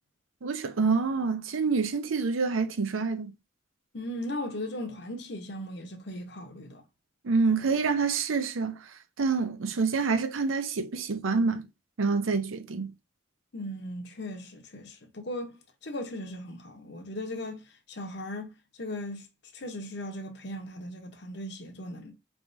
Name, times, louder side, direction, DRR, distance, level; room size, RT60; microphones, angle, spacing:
voice 1, 0.4-3.3 7.2-8.9 9.2-11.7 12.0-12.9, right 4 dB, 90° right, 0.6 m, -27 dB
voice 2, 3.9-6.8 13.5-18.5 18.8-19.3 19.5-22.1, left 1 dB, 60° left, 0.8 m, -38 dB
4.6 x 3.4 x 2.6 m
head